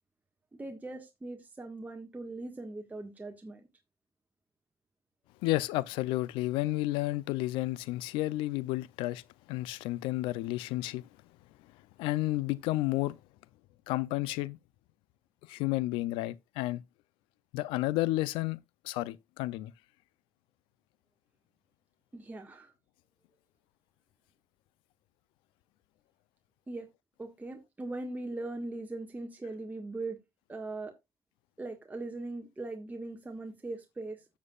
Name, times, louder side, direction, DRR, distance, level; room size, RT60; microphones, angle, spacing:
voice 1, 0.6-3.6 22.1-22.7 26.7-26.9 27.2-30.2 30.5-30.9 31.6-34.2, right 2 dB, 20° right, 1.6 m, -40 dB
voice 2, 5.4-9.2 9.5-11.0 12.0-13.1 13.9-14.6 15.5-16.8 17.5-18.6 18.8-19.7, left 18 dB, 90° left, 0.5 m, -31 dB
12.5 x 7.3 x 2.4 m
supercardioid pair, 70°, 8 cm